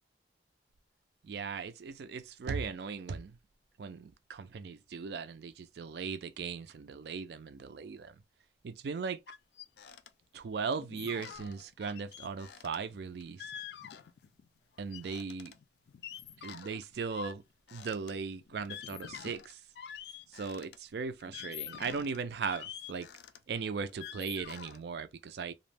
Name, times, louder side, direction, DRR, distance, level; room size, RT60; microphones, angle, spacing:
voice 1, 1.2-3.4 3.8-8.2 8.6-9.2 10.3-13.5 14.8-15.5 16.4-17.4 17.7-19.6 20.3-23.1 23.5-25.5, right 5 dB, 65° right, 0.4 m, -38 dB
sound 1, 9.3-10.1 10.4-10.5 10.7-14.5 14.7-20.8 21.2-24.8, left 9 dB, 65° left, 0.3 m, -47 dB
2.4 x 2.0 x 3.3 m
head